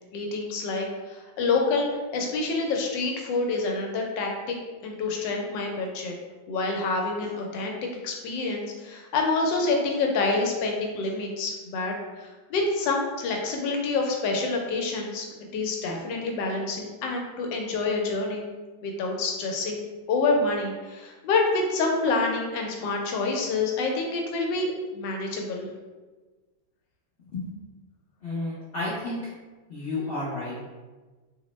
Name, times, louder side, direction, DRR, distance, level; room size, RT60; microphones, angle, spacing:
voice 1, 0.1-4.6 4.8-6.1 6.5-7.8 8.0-15.3 15.5-18.5 18.8-19.8 20.1-25.7, left 3 dB, 85° left, 1 dB, 1.3 m, -27 dB
voice 2, 28.2-29.2 29.7-30.6, left 2 dB, 60° left, -10 dB, 0.6 m, -31 dB
3.0 x 2.0 x 2.9 m, 1.3 s
omnidirectional pair, 1.9 m